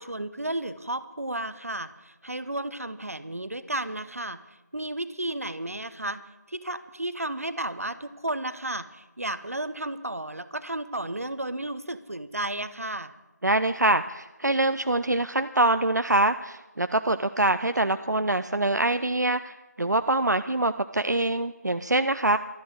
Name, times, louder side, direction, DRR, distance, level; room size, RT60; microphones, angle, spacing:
voice 1, 0.0-4.4 4.7-6.2 6.5-13.1, right 1 dB, 55° right, 13 dB, 0.9 m, -33 dB
voice 2, 13.4-22.4, right 2 dB, 75° right, 10 dB, 0.6 m, -24 dB
12.5 x 11.0 x 7.8 m, 1.1 s
figure-of-eight pair, 175°, 9 cm